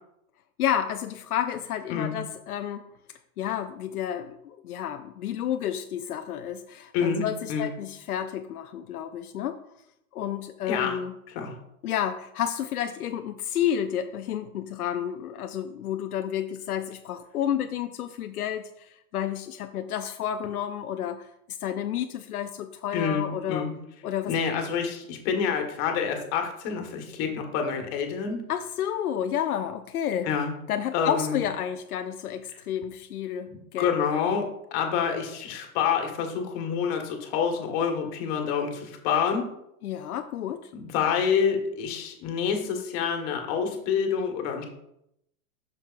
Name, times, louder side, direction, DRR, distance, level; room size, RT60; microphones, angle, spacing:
voice 1, 0.6-2.9 3.4-9.6 10.1-11.1 11.8-21.3 21.6-23.7 24.0-24.3 28.5-30.3 30.7-34.0 39.8-40.7, left 10 dB, 90° left, 7 dB, 0.6 m, -30 dB
voice 2, 6.9-7.7 10.7-11.0 11.3-11.5 22.9-23.7 24.3-28.4 30.2-30.5 30.9-31.4 33.5-39.5 40.7-44.6, left 6 dB, 50° left, 3 dB, 1.6 m, -27 dB
7.4 x 6.3 x 2.5 m, 0.80 s
hypercardioid pair, 110°, 43 cm